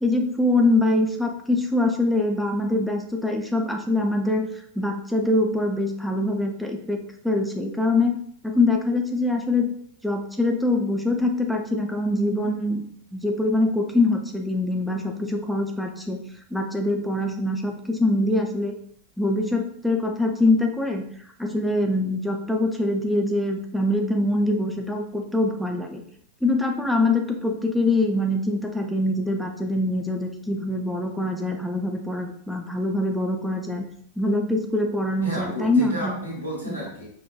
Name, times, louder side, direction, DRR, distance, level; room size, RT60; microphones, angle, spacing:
voice 1, 0.0-7.0 7.2-8.2 8.4-9.7 10.0-12.8 13.1-16.2 16.5-18.7 19.2-21.0 21.4-26.0 26.4-33.8 34.2-36.1 36.7-36.8, left 2 dB, ahead, 2 dB, 0.4 m, -24 dB
voice 2, 35.2-37.1, right 1 dB, 90° right, -5 dB, 1.2 m, -32 dB
4.6 x 2.1 x 2.2 m, 0.65 s
figure-of-eight pair, 90°, 0 cm